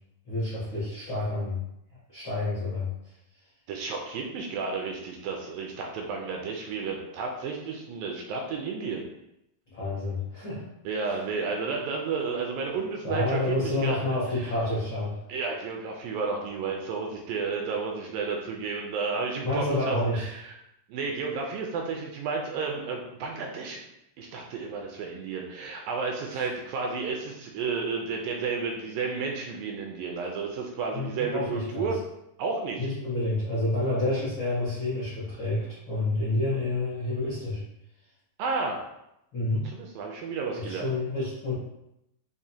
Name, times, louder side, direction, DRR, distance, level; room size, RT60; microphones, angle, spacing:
voice 1, 0.3-1.6 2.1-2.9 9.7-10.6 11.0-11.1 13.0-15.2 19.4-20.3 26.3-26.5 30.9-31.9 32.8-37.6 39.3-39.7 40.5-41.5, left 2 dB, 80° left, -9 dB, 1.1 m, -29 dB
voice 2, 3.7-9.0 10.9-14.2 14.4-14.5 15.3-20.6 20.9-23.8 24.2-32.0 32.4-32.9 38.4-38.8 39.6-40.9, right 4 dB, 80° right, 1 dB, 2.1 m, -32 dB
5.9 x 2.1 x 2.7 m, 0.83 s
omnidirectional pair, 4.2 m